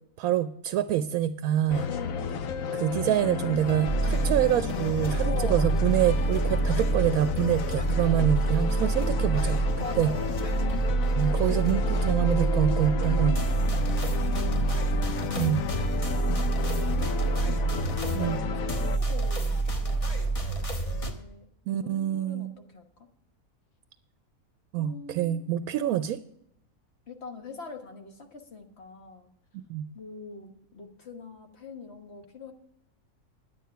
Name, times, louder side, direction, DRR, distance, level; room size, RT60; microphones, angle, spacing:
voice 1, 0.2-1.9 2.8-9.6 10.0-10.1 11.1-13.3 15.4-15.7 18.1-18.4 21.7-22.5 24.7-26.2 29.7-29.9, right 11 dB, 75° right, 13 dB, 1.0 m, -26 dB
sound 1, 1.7-19.0, left 7 dB, 70° left, 1.1 m, -32 dB
voice 2, 1.9-2.6 5.2-5.7 8.0-8.5 9.8-10.5 11.4-12.4 13.2-13.5 13.8-14.6 15.7-17.4 18.0-21.5 21.8-23.1 24.8-25.4 27.1-29.3 29.9-32.5, left 4 dB, 45° left, 6 dB, 1.5 m, -43 dB
sound 2, 3.9-21.1, right 3 dB, 25° left, 1.2 m, -27 dB
10.5 x 9.3 x 5.6 m, 0.74 s
omnidirectional pair, 1.6 m